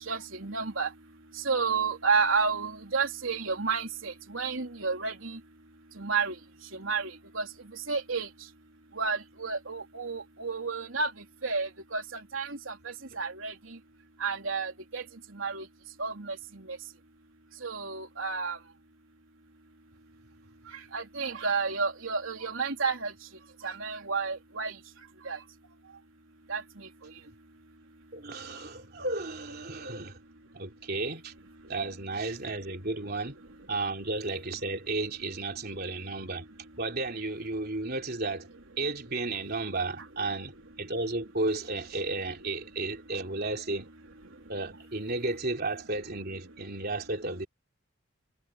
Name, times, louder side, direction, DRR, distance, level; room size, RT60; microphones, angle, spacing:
voice 1, 0.1-0.9 1.5-5.4 6.0-6.3 6.7-7.5 7.9-8.3 9.0-11.1 11.4-13.5 14.2-15.0 15.3-15.7 16.0-16.4 17.6-18.6 20.9-23.1 23.6-24.7 25.3-25.4 26.5-26.6, right 4 dB, 80° right, 3.5 m, -31 dB
voice 2, 28.1-30.2 30.5-31.3 31.7-33.4 33.7-36.5 36.8-38.5 38.8-40.5 40.8-43.9 44.5-47.5, right 2 dB, 50° right, 3.3 m, -33 dB
head